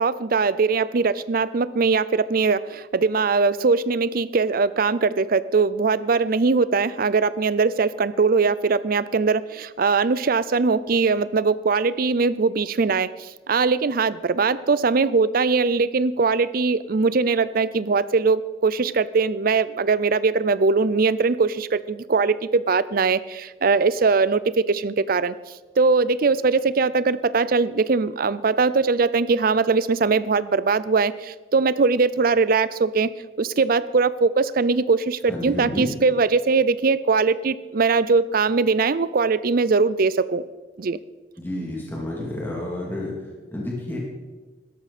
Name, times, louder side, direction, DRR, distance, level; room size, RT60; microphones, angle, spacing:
voice 1, 0.0-25.3 25.8-33.1 33.4-40.4 40.8-41.0, right 4 dB, 55° right, 17 dB, 0.5 m, -21 dB
voice 2, 35.3-35.9 41.4-43.1 43.5-44.0, left 1 dB, 10° left, -3 dB, 2.7 m, -30 dB
16.5 x 13.0 x 4.3 m, 1.3 s
head